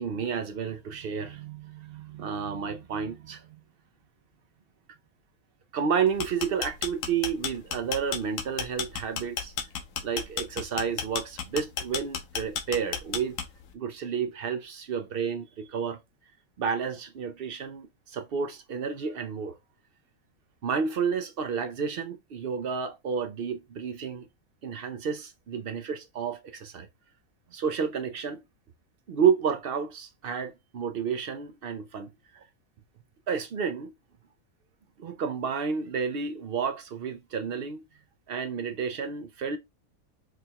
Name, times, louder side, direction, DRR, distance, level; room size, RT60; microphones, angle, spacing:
voice 1, 0.0-3.6 5.7-9.5 10.0-13.4 13.7-16.0 16.6-19.6 20.6-24.3 24.6-26.9 27.5-28.4 29.1-32.4 33.3-33.9 35.0-37.8 38.3-39.6, right 6 dB, 65° right, 0.5 m, -31 dB
sound 1, 6.1-13.7, left 7 dB, 70° left, 1.1 m, -32 dB
4.8 x 2.3 x 2.8 m
omnidirectional pair, 1.5 m